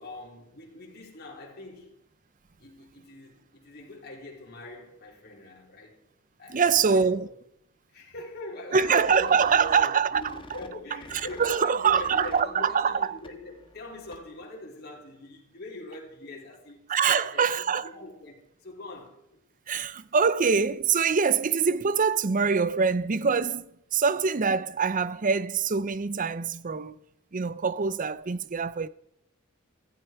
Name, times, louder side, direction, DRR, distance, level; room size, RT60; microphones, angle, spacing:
voice 1, 0.0-2.0 2.6-6.0 6.4-7.3 7.9-16.8 17.1-19.4 19.8-20.0, left 2 dB, 50° left, 4.0 m, -42 dB
voice 2, 6.5-7.3 8.7-10.4 11.1-13.2 16.9-17.9 19.7-27.0 27.3-28.9, right 6 dB, 40° right, 0.6 m, -24 dB
sound 1, 8.7-14.4, left 2 dB, 25° left, 1.5 m, -49 dB
16.0 x 15.0 x 4.6 m
head